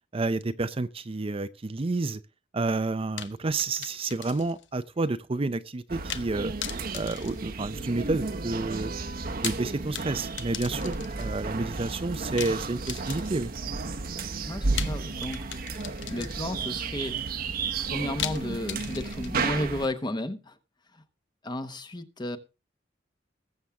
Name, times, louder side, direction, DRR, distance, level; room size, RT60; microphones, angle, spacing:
voice 1, 0.1-2.2 2.5-6.5 6.9-8.9 9.4-13.5, right 3 dB, 30° right, 0.5 m, -30 dB
sound 1, 3.2-4.7 5.0-5.1 6.1-6.3 6.6-8.1 9.2-11.3 12.4-13.6 14.8-16.7 18.2-19.6, left 10 dB, 80° left, 0.9 m, -38 dB
sound 2, 5.9-19.9, right 4 dB, 55° right, 0.9 m, -33 dB
voice 2, 14.4-15.4 16.1-17.2 17.8-20.6 20.9-21.0 21.4-22.4, left 1 dB, 25° left, 1.0 m, -33 dB
20.5 x 7.3 x 3.5 m
head